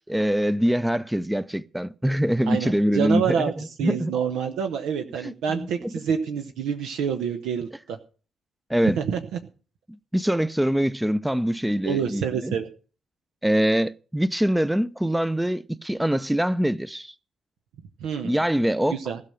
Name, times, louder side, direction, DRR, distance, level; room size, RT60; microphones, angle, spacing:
voice 1, 0.1-4.1 5.2-5.9 8.7-9.0 10.1-12.5 13.4-17.1 18.2-19.0, equal, 5° right, 0.7 m, -24 dB
voice 2, 2.5-3.5 3.8-8.0 8.8-9.2 11.8-12.7 18.0-18.4 18.9-19.2, right 7 dB, 65° right, 0.9 m, -27 dB
16.0 x 5.7 x 7.7 m
figure-of-eight pair, 40°, 0 cm